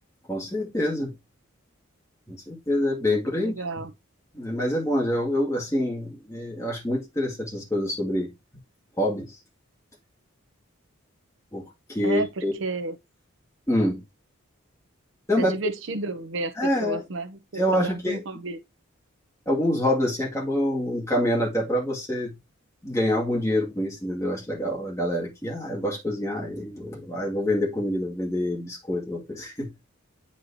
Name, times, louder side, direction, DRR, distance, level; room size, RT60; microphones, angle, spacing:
voice 1, 0.3-1.1 2.3-3.5 4.3-8.3 9.0-9.4 11.5-12.5 13.7-14.0 15.3-15.6 16.6-17.0 17.5-18.2 19.5-22.4 22.8-29.9, left 1 dB, 15° left, 2.0 m, -26 dB
voice 2, 3.3-3.9 12.0-13.0 15.4-16.5 16.8-18.6, right 3 dB, 65° right, 0.7 m, -32 dB
9.2 x 4.2 x 2.7 m
head